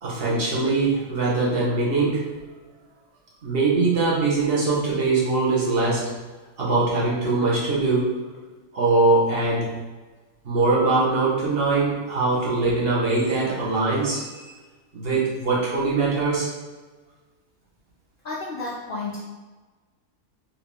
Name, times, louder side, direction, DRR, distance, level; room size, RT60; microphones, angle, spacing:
voice 1, 0.0-2.3 3.4-6.1 6.6-8.1 8.7-9.7 10.4-14.6 14.9-16.5, right 3 dB, 40° right, -6 dB, 1.4 m, -22 dB
voice 2, 18.2-19.2, left 3 dB, 55° left, -5 dB, 0.6 m, -31 dB
4.6 x 3.0 x 3.5 m, 1.3 s
omnidirectional pair, 1.6 m